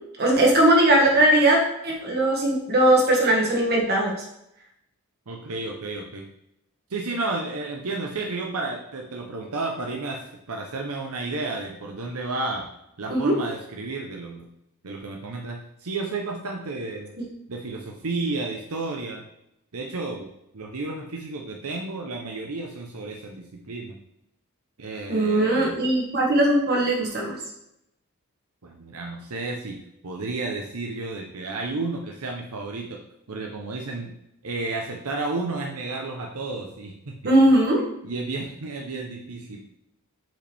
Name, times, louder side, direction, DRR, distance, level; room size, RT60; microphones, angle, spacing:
voice 1, 0.2-4.2 13.1-13.3 25.1-27.4 37.2-37.8, right 1 dB, 45° right, -2 dB, 1.8 m, -19 dB
voice 2, 5.3-6.2 6.9-12.7 13.0-14.5 14.8-17.1 17.5-19.2 19.7-23.9 24.8-25.7 28.6-33.0 33.3-34.1 34.4-37.2 38.0-39.6, right 3 dB, 85° right, 1 dB, 0.8 m, -32 dB
7.3 x 5.1 x 3.5 m, 0.81 s
head